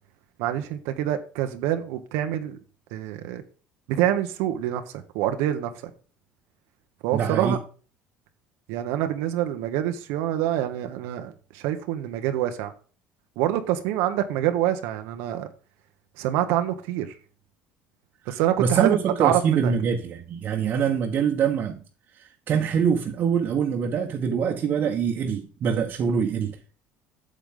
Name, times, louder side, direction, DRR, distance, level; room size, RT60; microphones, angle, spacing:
voice 1, 0.4-2.6 2.9-3.4 3.9-4.8 5.1-5.7 7.0-7.6 8.7-12.7 13.4-15.5 16.2-17.1 18.3-19.7, right 12 dB, 80° right, 1.2 m, -26 dB
voice 2, 7.1-7.6 18.3-21.8 22.2-26.6, right 7 dB, 45° right, 1.4 m, -24 dB
8.6 x 8.0 x 3.8 m
cardioid pair, 130°, 4 cm